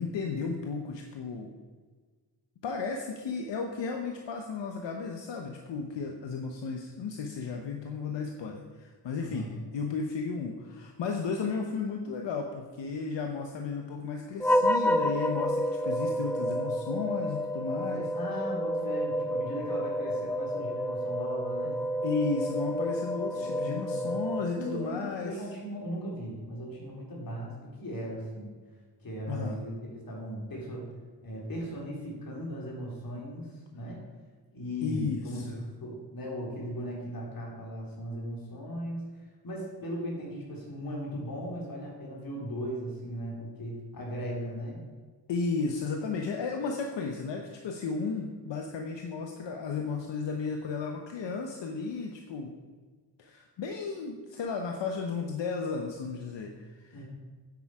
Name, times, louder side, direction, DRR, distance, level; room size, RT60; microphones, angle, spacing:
voice 1, 0.0-1.5 2.6-18.1 21.6-21.7 22.0-25.4 29.3-29.6 34.8-35.7 45.3-52.5 53.2-57.0, left 4 dB, 85° left, 3 dB, 1.0 m, -34 dB
voice 2, 9.2-9.6 17.8-21.8 23.3-24.1 24.5-28.5 29.0-30.9 31.2-34.0 34.5-39.1 39.4-44.9 56.9-57.0, equal, 55° left, -2 dB, 3.6 m, -38 dB
sound 1, 14.4-24.9, equal, 5° left, 0.3 m, -30 dB
9.6 x 8.6 x 4.9 m, 1.5 s
wide cardioid pair, 110°, 42 cm